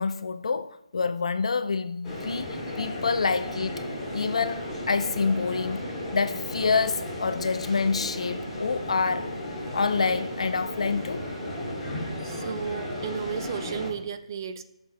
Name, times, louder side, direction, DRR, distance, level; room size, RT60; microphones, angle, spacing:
voice 1, 0.0-3.8 4.1-9.3 9.7-11.2, left 4 dB, 70° left, 0.6 m, -27 dB
sound 1, 2.0-13.9, left 1 dB, 10° left, 2.8 m, -34 dB
voice 2, 12.2-14.6, right 7 dB, 35° right, 0.5 m, -33 dB
14.0 x 6.7 x 2.3 m
hypercardioid pair, 160°, 3 cm